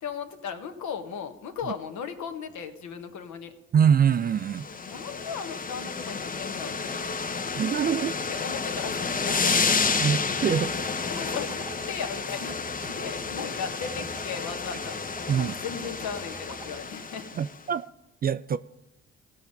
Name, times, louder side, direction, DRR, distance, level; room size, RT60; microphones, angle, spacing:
voice 1, 0.0-3.5 4.6-7.0 8.3-9.6 11.1-17.3, left 6 dB, 60° left, 1.3 m, -37 dB
voice 2, 3.7-4.7 7.6-8.2 10.0-10.7 15.3-15.5 17.4-17.9 18.2-18.6, right 8 dB, 30° right, 0.3 m, -24 dB
sound 1, 4.3-17.6, left 4 dB, 25° left, 0.7 m, -30 dB
sound 2, 9.3-16.8, right 2 dB, 10° right, 0.9 m, -46 dB
16.5 x 5.7 x 5.3 m
hypercardioid pair, 55°, 32 cm